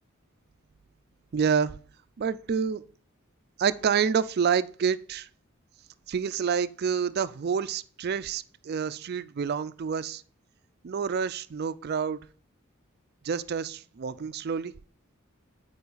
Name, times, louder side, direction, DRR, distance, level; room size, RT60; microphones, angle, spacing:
voice 1, 1.3-1.8 2.2-2.8 3.6-5.3 6.1-10.2 10.8-12.2 13.2-14.7, right 6 dB, 50° right, 0.4 m, -28 dB
9.5 x 5.1 x 3.9 m
head